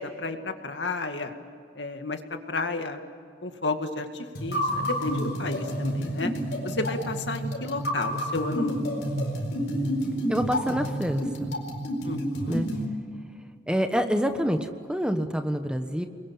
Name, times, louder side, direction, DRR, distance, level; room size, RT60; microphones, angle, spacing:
voice 1, 0.0-1.3 1.8-2.2 2.5-3.0 3.4-6.3 6.6-8.9 12.0-12.6, left 3 dB, 85° left, 6 dB, 2.2 m, -32 dB
sound 1, 4.3-12.8, equal, 65° left, 4.7 m, -29 dB
voice 2, 10.3-11.5 12.5-12.7 13.7-16.1, equal, 5° right, 7 dB, 1.3 m, -27 dB
30.0 x 22.0 x 8.9 m, 2.3 s
head